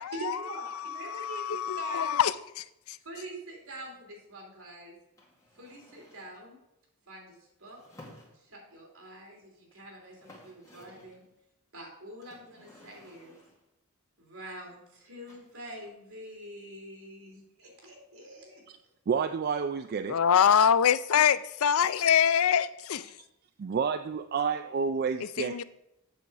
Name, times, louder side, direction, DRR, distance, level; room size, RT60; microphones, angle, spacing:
voice 1, 0.1-2.1 3.0-5.0 5.5-6.6 7.1-7.8 8.3-11.3 11.7-13.4 14.2-18.6, right 1 dB, 75° right, 3.2 m, -45 dB
voice 2, 0.8-3.0 20.1-23.1 25.4-25.6, left 8 dB, 75° left, 0.4 m, -25 dB
sound 1, 5.2-6.4 7.7-8.8 9.7-9.8 10.0-11.2 12.2-13.7 15.3-15.9, left 1 dB, 15° left, 2.0 m, -55 dB
voice 3, 19.1-20.2 21.9-22.0 23.2-23.3 23.6-25.6, right 6 dB, 45° right, 0.3 m, -30 dB
8.2 x 6.7 x 4.9 m
head